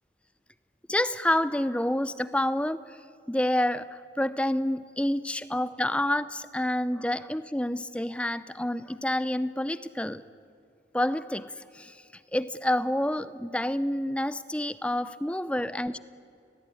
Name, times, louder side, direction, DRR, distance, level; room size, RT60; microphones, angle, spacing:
voice 1, 0.9-3.0 3.3-10.2 10.9-12.0 12.3-16.0, left 1 dB, 5° left, 15 dB, 0.6 m, -28 dB
30.0 x 17.5 x 9.8 m, 2.4 s
head